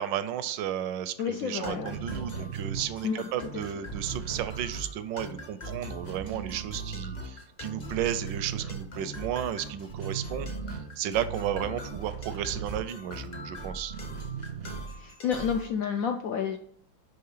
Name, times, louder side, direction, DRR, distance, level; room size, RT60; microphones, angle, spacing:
voice 1, 0.0-13.9, right 10 dB, 80° right, 12 dB, 1.2 m, -33 dB
voice 2, 1.2-1.9 3.0-3.3 3.5-3.6 15.0-16.6, left 7 dB, 80° left, 4 dB, 0.7 m, -30 dB
sound 1, 1.6-15.7, right 1 dB, 45° left, 0.6 m, -41 dB
sound 2, 1.9-5.5 5.7-7.4 7.7-13.4 13.8-15.1, right 7 dB, 55° right, 0.7 m, -39 dB
5.7 x 3.4 x 5.5 m, 0.64 s
omnidirectional pair, 2.0 m